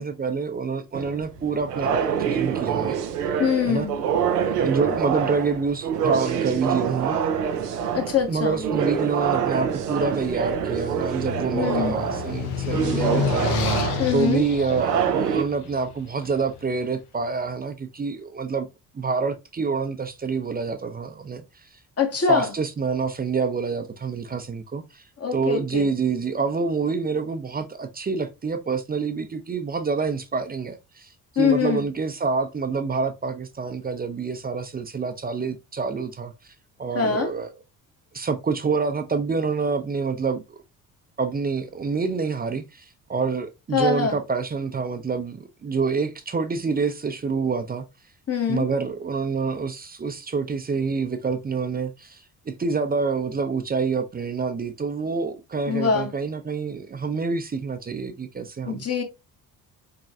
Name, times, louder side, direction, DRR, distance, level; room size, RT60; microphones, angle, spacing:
voice 1, 0.0-3.0 3.6-3.9 4.6-7.2 8.3-13.7 14.1-18.7 18.9-21.4 22.3-25.0 25.3-31.1 31.3-36.3 36.8-37.5 38.1-40.6 41.2-42.8 43.1-47.8 48.5-58.8, right 5 dB, 20° right, 0.7 m, -27 dB
sound 1, 0.9-15.4, right 7 dB, 80° right, 0.6 m, -26 dB
voice 2, 3.4-4.0 7.9-8.6 11.5-12.0 14.0-14.4 22.0-22.5 25.2-25.9 31.4-31.8 36.9-37.3 43.7-44.2 48.3-48.6 55.7-56.1 58.7-59.0, left 6 dB, 30° left, 1.5 m, -23 dB
sound 2, 10.2-16.4, left 6 dB, 60° left, 1.0 m, -29 dB
4.9 x 3.7 x 2.4 m
figure-of-eight pair, 45°, 47 cm